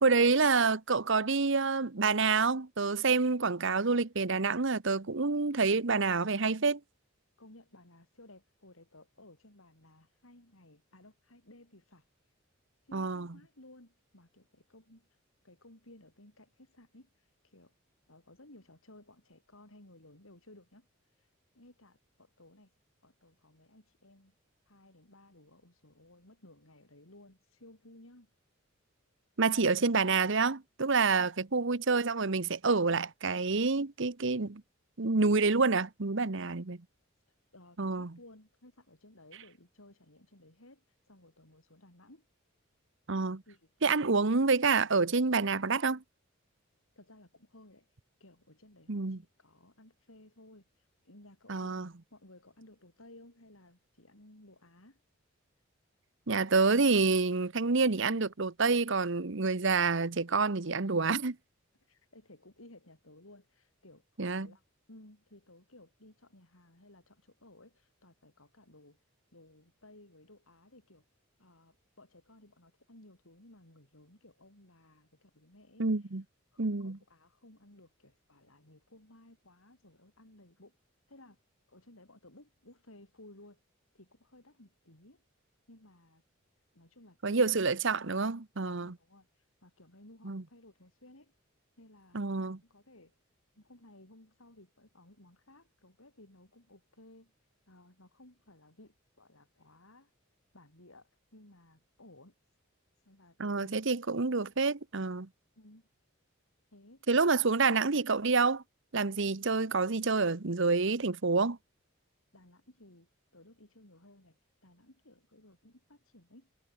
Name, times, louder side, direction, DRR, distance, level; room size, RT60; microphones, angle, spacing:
voice 1, 0.0-6.8 12.9-13.3 29.4-34.6 35.0-36.8 37.8-38.1 43.1-43.4 43.8-46.0 48.9-49.2 51.5-51.9 56.3-61.4 64.2-64.5 75.8-76.2 76.6-77.0 87.2-88.9 90.2-90.4 92.1-92.6 103.4-105.3 107.1-108.6 108.9-111.6, right 4 dB, 65° right, 1.1 m, -28 dB
voice 2, 3.6-4.0 7.4-12.0 12.8-15.1 15.4-17.1 17.4-17.7 18.1-20.9 21.2-21.3 21.5-22.7 23.0-24.3 24.7-28.3 31.2-31.3 36.4-36.5 37.5-42.3 43.5-43.7 44.0-44.2 46.9-47.9 48.2-50.7 51.0-55.0 61.9-64.0 64.3-64.6 64.9-69.0 69.3-71.0 71.4-75.9 76.5-80.8 81.1-81.4 81.7-83.6 83.9-85.2 85.7-86.2 86.7-87.4 88.6-89.3 89.6-91.3 91.8-93.1 93.5-97.3 97.7-100.1 100.5-102.3 103.0-103.7 105.6-105.9 106.7-107.1 112.3-116.5, left 1 dB, 85° left, 6.9 m, -58 dB
head